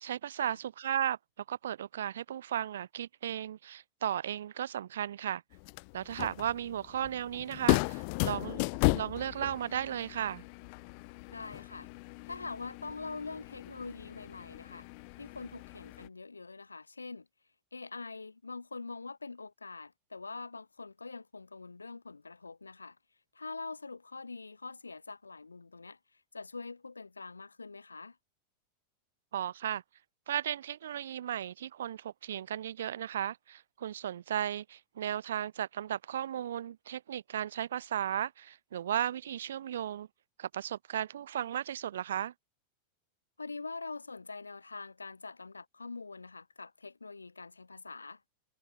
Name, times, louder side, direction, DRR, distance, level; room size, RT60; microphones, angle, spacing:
voice 1, 0.0-1.2 1.5-5.4 5.9-8.6 8.9-10.4 29.3-29.8 30.3-40.1 40.4-42.3, right 10 dB, 60° right, 0.4 m, -35 dB
sound 1, 5.5-16.1, left 35 dB, 45° left, 0.7 m, -35 dB
voice 2, 11.3-11.9 12.2-14.9 15.2-17.3 17.7-23.0 23.3-28.2 43.4-48.2, left 3 dB, 80° left, 2.7 m, -44 dB
figure-of-eight pair, 90°, 0 cm